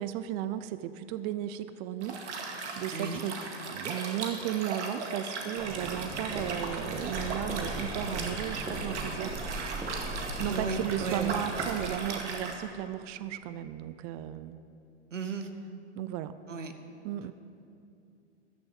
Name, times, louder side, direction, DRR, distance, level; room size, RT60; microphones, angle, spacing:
voice 1, 0.0-2.2 2.8-3.4 3.7-9.4 10.4-14.6 15.9-16.4 17.0-17.3, right 12 dB, 35° right, 13 dB, 0.5 m, -35 dB
Liquid, 2.0-12.6, right 4 dB, 70° right, 2.2 m, -38 dB
Walk footsteps, 5.6-11.9, right 1 dB, 15° right, 2.4 m, -38 dB
voice 2, 10.5-11.4 15.1-15.5 16.5-16.7, right 4 dB, 85° right, 7 dB, 1.3 m, -34 dB
13.5 x 6.9 x 8.8 m, 2.6 s
hypercardioid pair, 105°, 36 cm